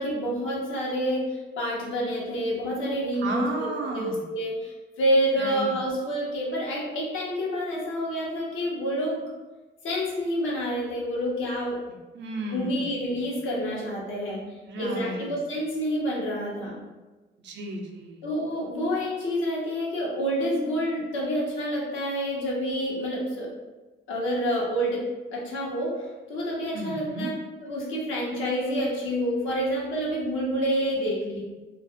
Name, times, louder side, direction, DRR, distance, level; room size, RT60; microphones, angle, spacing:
voice 1, 0.0-9.2 9.8-11.8 12.5-14.4 14.8-16.8 18.2-23.5 24.1-25.0 25.3-27.3 27.6-31.4, equal, 80° left, -3 dB, 0.8 m, -28 dB
voice 2, 3.2-4.2 5.4-5.8 12.1-13.0 14.7-15.3 17.4-18.3 26.7-27.3, right 2 dB, 65° right, 2 dB, 0.5 m, -33 dB
2.4 x 2.0 x 2.7 m, 1.2 s
cardioid pair, 90°, 20 cm